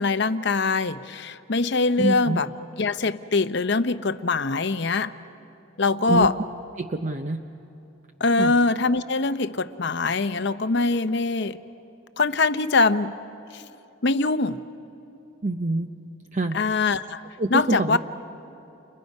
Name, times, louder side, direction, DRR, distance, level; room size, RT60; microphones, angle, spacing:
voice 1, 0.0-2.5 2.8-5.1 5.8-6.3 8.2-11.6 12.2-13.2 13.5-13.6 14.0-14.6 16.5-17.2 17.5-18.0, left 3 dB, 55° left, 12 dB, 0.7 m, -23 dB
voice 2, 2.0-2.4 6.1-6.3 6.8-7.4 8.4-8.5 15.4-15.9 16.3-16.6 17.4-18.0, right 2 dB, 35° right, 6 dB, 0.6 m, -25 dB
30.0 x 30.0 x 5.4 m, 3.0 s
head